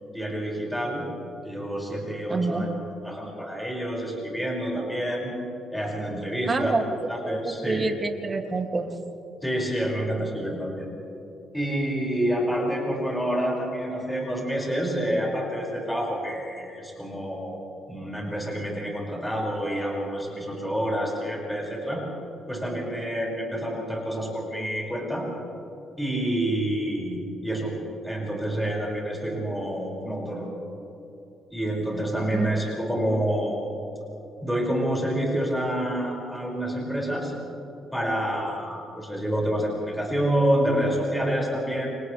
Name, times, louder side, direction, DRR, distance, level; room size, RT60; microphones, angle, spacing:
voice 1, 0.1-1.0 1.4-2.7 3.0-5.3 5.7-7.9 9.4-10.9 11.5-17.6 17.9-22.0 22.5-25.3 26.0-27.8 28.0-30.5 31.5-33.6 34.4-37.3 37.9-41.9, right 1 dB, 5° left, -3 dB, 6.1 m, -28 dB
voice 2, 2.3-2.7 6.5-6.8 7.2-8.9 32.3-32.5, right 3 dB, 30° right, 3 dB, 2.5 m, -27 dB
29.5 x 28.0 x 3.4 m, 2.8 s
cardioid pair, 90°, 0 cm